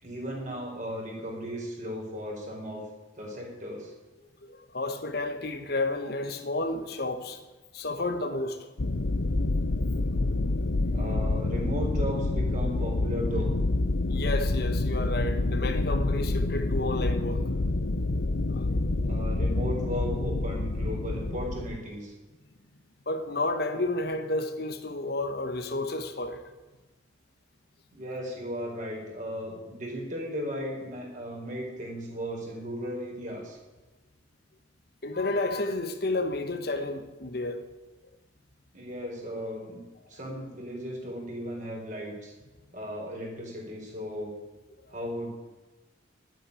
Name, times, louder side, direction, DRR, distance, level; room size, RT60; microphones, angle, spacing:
voice 1, 0.0-2.8 3.2-3.9 10.9-13.5 19.0-22.1 27.9-33.6 38.7-39.8 40.1-42.3 42.7-44.3 44.9-45.3, equal, 40° right, 4.6 m, -36 dB
voice 2, 4.4-7.4 7.7-8.7 10.2-10.3 10.7-10.9 14.1-17.5 18.5-18.8 23.1-26.4 35.0-37.7 44.9-45.0, left 2 dB, 55° left, 1.2 m, -31 dB
sound 1, 8.8-21.8, left 2 dB, 80° left, 0.8 m, -27 dB
11.0 x 9.2 x 9.6 m
head